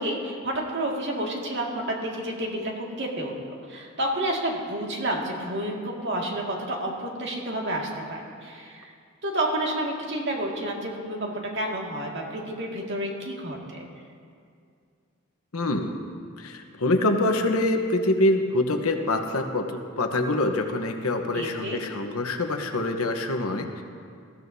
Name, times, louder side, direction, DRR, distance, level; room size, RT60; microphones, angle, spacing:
voice 1, 0.0-8.9 9.2-13.9 21.3-21.8, right 1 dB, 55° right, -2 dB, 2.1 m, -30 dB
voice 2, 15.5-15.9 16.4-19.7 20.0-23.8, left 2 dB, 80° left, 5 dB, 1.1 m, -25 dB
20.0 x 14.5 x 2.7 m, 2.3 s
head